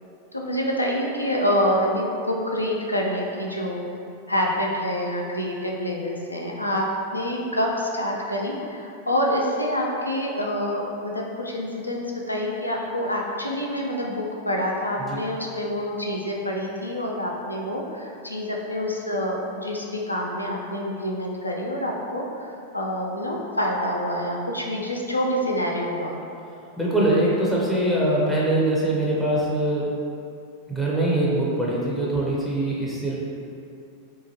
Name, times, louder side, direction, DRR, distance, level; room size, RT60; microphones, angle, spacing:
voice 1, 0.3-3.8 4.3-6.9 7.1-26.2, equal, 85° left, -2 dB, 0.3 m, -27 dB
voice 2, 26.8-29.9 30.7-33.2, right 1 dB, 5° left, -6 dB, 0.5 m, -23 dB
2.9 x 2.3 x 2.7 m, 2.6 s
figure-of-eight pair, 90°, 0 cm